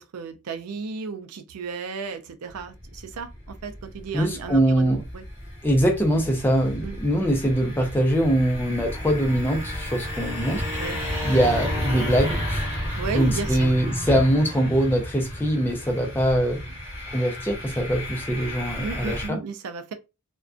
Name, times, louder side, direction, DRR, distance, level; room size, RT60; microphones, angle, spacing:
voice 1, 0.0-5.2 6.8-7.0 10.8-11.0 13.0-13.7 18.8-19.9, right 5 dB, 90° right, 0.4 m, -34 dB
sound 1, 2.6-19.3, equal, 10° right, 1.0 m, -32 dB
voice 2, 4.1-5.0 5.6-10.7 11.2-16.6 17.1-19.4, right 1 dB, 10° left, 0.4 m, -23 dB
2.4 x 2.2 x 2.4 m
head